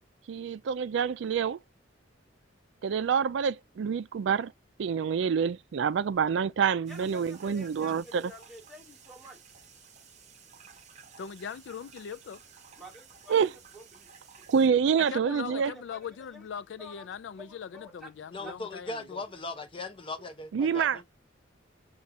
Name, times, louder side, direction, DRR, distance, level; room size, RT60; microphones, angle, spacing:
voice 1, 0.3-1.6 2.8-4.5 4.8-8.2 13.3-13.5 14.5-15.7 20.5-21.0, right 6 dB, 70° right, 0.3 m, -27 dB
voice 2, 6.9-9.4 12.8-14.1 14.8-16.5 16.8-17.1 17.4-18.1 18.4-19.6, left 1 dB, ahead, 1.6 m, -49 dB
sound 1, 6.9-14.7, right 6 dB, 35° right, 0.8 m, -54 dB
voice 3, 11.2-12.4 15.1-19.2, left 7 dB, 65° left, 0.3 m, -40 dB
voice 4, 18.3-21.0, left 2 dB, 30° left, 0.8 m, -39 dB
5.4 x 2.4 x 2.7 m
head